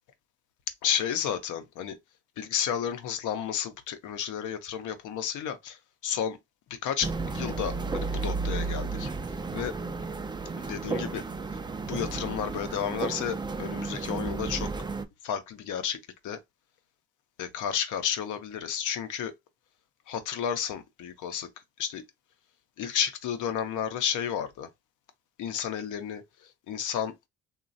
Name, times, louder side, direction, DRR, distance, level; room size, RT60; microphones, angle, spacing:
voice 1, 0.8-2.0 2.4-6.4 6.7-9.1 9.5-9.7 10.6-11.2 11.8-14.7 15.2-16.4 17.4-19.3 20.1-21.5 21.8-22.1 22.8-24.7 25.4-26.2 26.7-27.1, left 8 dB, 80° left, 0.6 m, -32 dB
sound 1, 7.0-15.0, right 4 dB, 15° right, 0.3 m, -33 dB
3.0 x 2.3 x 2.5 m
cardioid pair, 90°, 30 cm